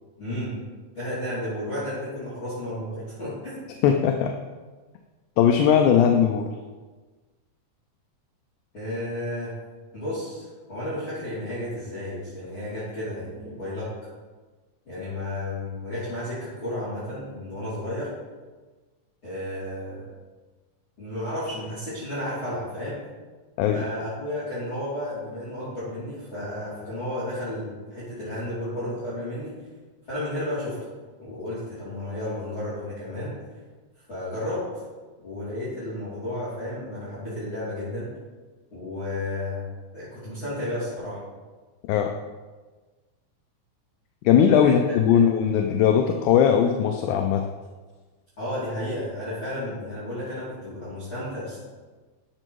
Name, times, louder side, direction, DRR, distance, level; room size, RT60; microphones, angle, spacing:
voice 1, 0.2-0.5 0.9-3.6 8.7-9.5 9.9-13.9 14.8-18.1 19.2-20.0 21.0-23.0 23.7-29.5 30.1-30.8 31.2-33.4 34.1-34.8 35.2-38.1 38.7-39.6 39.9-41.2 44.6-45.3 48.4-51.6, left 1 dB, 40° left, -13 dB, 3.4 m, -32 dB
voice 2, 3.8-4.4 5.4-6.5 23.6-23.8 41.8-42.1 44.2-47.5, left 8 dB, 80° left, 4 dB, 1.9 m, -19 dB
9.8 x 6.7 x 3.1 m, 1.3 s
omnidirectional pair, 3.7 m